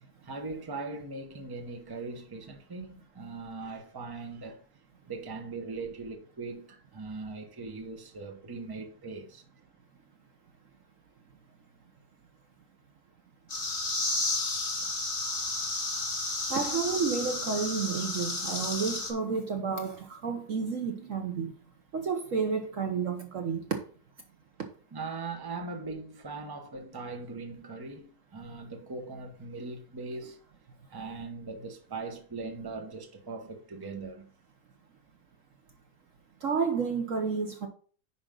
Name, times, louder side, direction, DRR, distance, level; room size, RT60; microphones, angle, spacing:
voice 1, 0.2-4.6 5.1-9.4 24.9-30.4 30.9-34.3, right 3 dB, 15° right, 0.9 m, -40 dB
sound 1, 13.5-19.1, left 2 dB, 30° left, 2.1 m, -32 dB
voice 2, 16.5-21.5 21.9-23.7 36.4-37.7, right 5 dB, 55° right, 1.1 m, -31 dB
9.9 x 5.2 x 3.8 m
omnidirectional pair, 1.9 m